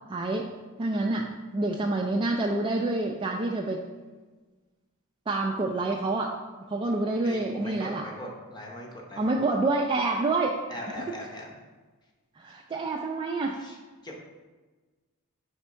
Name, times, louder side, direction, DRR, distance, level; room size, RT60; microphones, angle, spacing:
voice 1, 0.1-0.5 0.8-3.9 5.3-6.4 6.7-8.1 9.2-10.6 10.9-11.1 12.4-13.6, right 2 dB, 25° right, 0 dB, 0.3 m, -28 dB
voice 2, 7.2-9.3 10.7-11.5 13.6-13.8 14.0-14.2, left 1 dB, 20° left, 0 dB, 0.9 m, -40 dB
5.1 x 3.5 x 5.5 m, 1.3 s
head